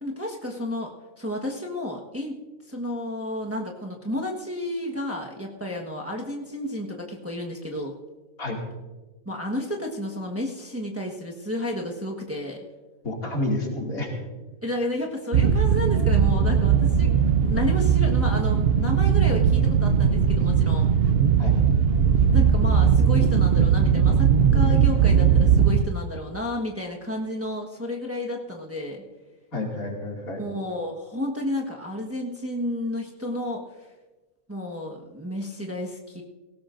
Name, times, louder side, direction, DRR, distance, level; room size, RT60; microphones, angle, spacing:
voice 1, 0.0-2.4 2.7-7.9 9.2-12.6 14.6-17.1 17.4-20.9 22.3-29.0 30.4-33.6 34.5-36.2, left 1 dB, 10° right, -1 dB, 1.2 m, -31 dB
voice 2, 13.0-14.1 21.4-21.6 29.5-30.4, left 2 dB, 80° left, -1 dB, 2.9 m, -29 dB
sound 1, 15.3-25.8, right 7 dB, 55° right, 0.7 m, -19 dB
18.0 x 17.0 x 2.6 m, 1.2 s
omnidirectional pair, 1.5 m